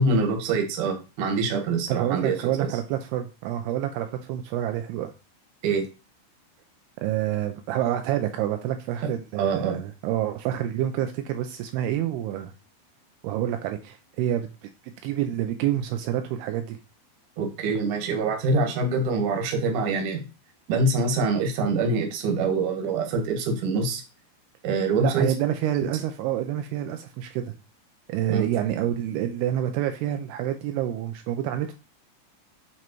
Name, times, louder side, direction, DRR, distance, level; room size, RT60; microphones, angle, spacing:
voice 1, 0.0-2.4 5.6-5.8 9.3-9.8 17.4-20.2 20.7-24.0 24.6-25.3 28.3-28.4, right 3 dB, 60° right, 3 dB, 2.2 m, -25 dB
voice 2, 1.9-5.1 7.0-12.5 13.2-16.8 25.0-27.4 28.1-31.7, right 11 dB, 90° right, 6 dB, 2.3 m, -28 dB
8.3 x 3.1 x 4.5 m, 0.31 s
omnidirectional pair, 5.2 m